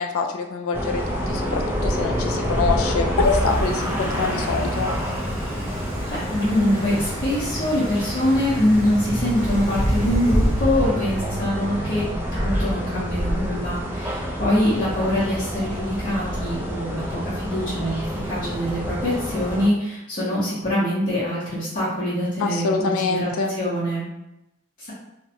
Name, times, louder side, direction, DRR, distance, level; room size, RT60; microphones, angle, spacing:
voice 1, 0.0-4.9 22.4-23.6, left 4 dB, 70° left, 4 dB, 0.3 m, -25 dB
sound 1, 0.7-19.7, equal, 10° right, 0.3 m, -26 dB
Water tap faucet, 3.2-11.7, right 1 dB, 40° right, 0.8 m, -40 dB
voice 2, 6.1-24.0 24.8-24.9, left 1 dB, 40° left, -10 dB, 0.6 m, -24 dB
2.6 x 2.1 x 2.7 m, 0.90 s
head